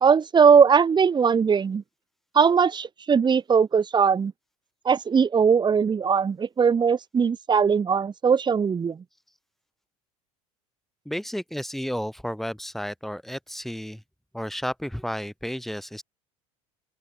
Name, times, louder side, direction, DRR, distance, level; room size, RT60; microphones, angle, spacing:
voice 1, 0.0-1.8 2.3-4.3 4.8-9.0, right 6 dB, 25° right, 1.5 m, -20 dB
voice 2, 11.0-14.0 14.3-16.0, equal, ahead, 4.7 m, -32 dB
open air
hypercardioid pair, 90°, 17 cm